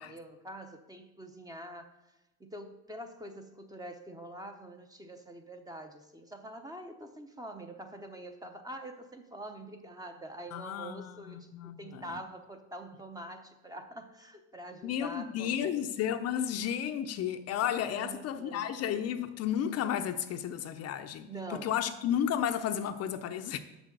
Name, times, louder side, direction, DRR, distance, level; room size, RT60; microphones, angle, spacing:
voice 1, 0.0-1.9 2.4-15.9 17.9-18.7 21.3-21.7, right 1 dB, 10° right, 0.7 m, -45 dB
voice 2, 10.5-12.0 14.8-23.6, left 9 dB, 45° left, 0.6 m, -33 dB
6.1 x 6.1 x 6.7 m
supercardioid pair, 115°, 35 cm